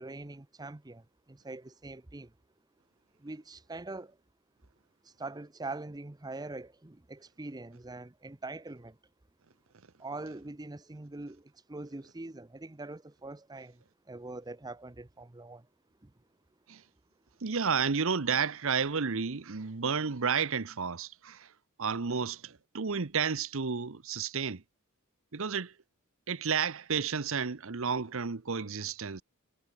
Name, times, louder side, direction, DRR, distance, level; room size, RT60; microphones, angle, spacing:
voice 1, 0.0-2.3 3.2-4.2 5.0-9.0 10.0-15.7 16.0-16.1, right 2 dB, 15° right, 0.6 m, -43 dB
voice 2, 17.4-21.5 21.8-24.6 25.3-25.7 26.3-29.2, right 6 dB, 60° right, 0.9 m, -31 dB
head